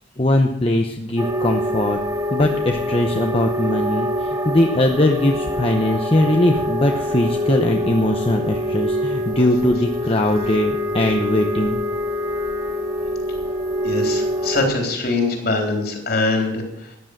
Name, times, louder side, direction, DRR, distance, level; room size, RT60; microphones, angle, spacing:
voice 1, 0.2-2.0 2.3-11.8, left 1 dB, 30° left, 4 dB, 0.9 m, -20 dB
sound 1, 1.2-14.6, left 1 dB, 20° right, 2.1 m, -25 dB
voice 2, 13.8-17.0, left 2 dB, 55° left, 2 dB, 3.7 m, -23 dB
13.5 x 10.0 x 6.6 m, 0.79 s
head